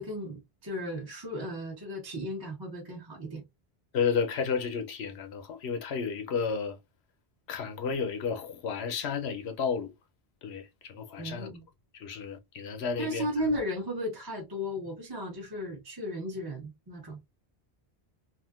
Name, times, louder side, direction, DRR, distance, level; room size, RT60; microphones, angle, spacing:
voice 1, 0.0-3.4 11.2-11.6 13.0-17.2, equal, 25° right, 0.8 m, -35 dB
voice 2, 3.9-6.8 7.5-9.9 10.4-11.5 11.9-13.2, left 6 dB, 85° left, 0.9 m, -32 dB
3.5 x 2.5 x 2.3 m
omnidirectional pair, 1.1 m